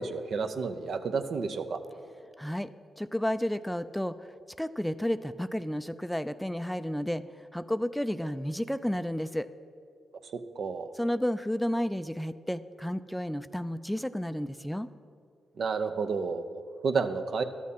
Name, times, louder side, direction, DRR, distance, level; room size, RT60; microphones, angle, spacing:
voice 1, 0.0-1.8 10.6-10.9 15.6-17.4, right 4 dB, 70° right, 8 dB, 0.6 m, -31 dB
voice 2, 2.4-2.7 3.0-4.3 4.6-7.2 7.5-9.5 11.0-14.9, equal, 5° left, 13 dB, 0.4 m, -31 dB
12.5 x 6.4 x 5.5 m, 2.3 s
supercardioid pair, 50°, 0 cm